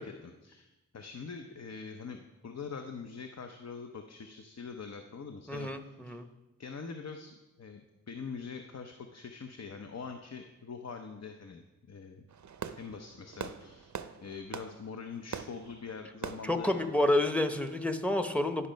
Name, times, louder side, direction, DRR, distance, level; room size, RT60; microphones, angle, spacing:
voice 1, 0.0-6.1 6.6-7.8 8.1-11.6 11.9-12.3 12.8-13.9 14.2-16.7, left 5 dB, 55° left, 5 dB, 0.7 m, -44 dB
voice 2, 5.5-6.3 16.4-18.7, left 1 dB, 5° left, 7 dB, 0.8 m, -29 dB
Fireworks, 12.3-17.9, right 7 dB, 65° right, 0.5 m, -44 dB
11.0 x 5.4 x 5.1 m, 1.1 s
cardioid pair, 55°, 31 cm